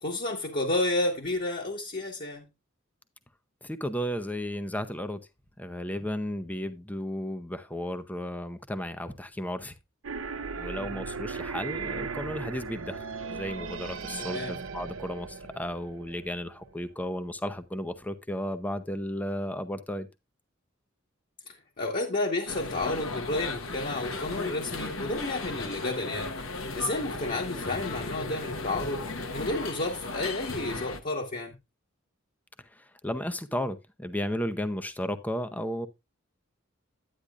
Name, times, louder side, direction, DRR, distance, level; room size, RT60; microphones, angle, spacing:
voice 1, 0.0-2.4 14.2-14.6 21.5-26.4 26.7-31.6, left 2 dB, 45° left, 1.4 m, -31 dB
voice 2, 3.6-5.2 5.6-9.8 10.6-20.1 32.7-35.9, equal, 10° left, 0.7 m, -34 dB
sound 1, 10.0-16.8, right 5 dB, 80° right, 0.8 m, -37 dB
sound 2, 22.5-31.0, left 2 dB, 80° left, 1.2 m, -36 dB
10.0 x 9.4 x 2.4 m
head